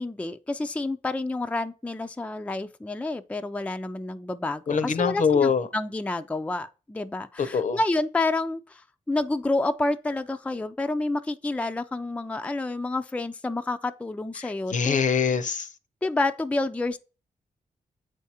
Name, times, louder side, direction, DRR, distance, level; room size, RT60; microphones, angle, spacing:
voice 1, 0.0-8.8 9.1-15.0 16.0-17.0, left 2 dB, 10° left, 0.4 m, -29 dB
voice 2, 4.7-5.7 7.4-7.8 14.4-15.7, left 6 dB, 60° left, 0.6 m, -24 dB
7.6 x 4.7 x 2.8 m
cardioid pair, 75°, 15 cm